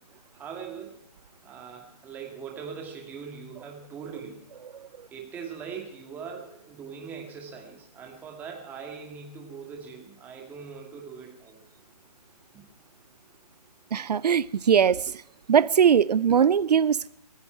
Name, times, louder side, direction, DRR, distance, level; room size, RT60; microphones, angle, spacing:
voice 1, 0.3-1.0 1.4-4.4 5.1-11.6, right 6 dB, 10° right, 2.3 m, -41 dB
voice 2, 13.9-15.1 15.5-17.1, right 8 dB, 80° right, 0.5 m, -21 dB
25.0 x 10.5 x 4.6 m
hypercardioid pair, 165°, 20 cm